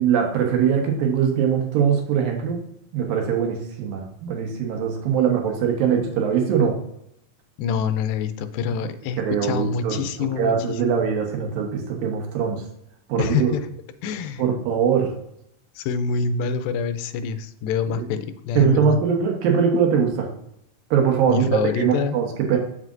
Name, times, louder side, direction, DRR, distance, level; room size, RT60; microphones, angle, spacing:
voice 1, 0.0-2.6 2.9-6.8 9.2-10.0 10.4-12.6 13.1-13.5 14.4-15.1 17.9-18.1 18.6-20.3 20.9-22.6, right 7 dB, 80° right, 2 dB, 2.8 m, -22 dB
voice 2, 7.6-11.0 13.2-13.7 14.0-14.4 15.8-19.0 21.3-22.2, left 6 dB, 85° left, 10 dB, 2.4 m, -26 dB
7.6 x 7.5 x 2.5 m, 0.75 s
omnidirectional pair, 4.1 m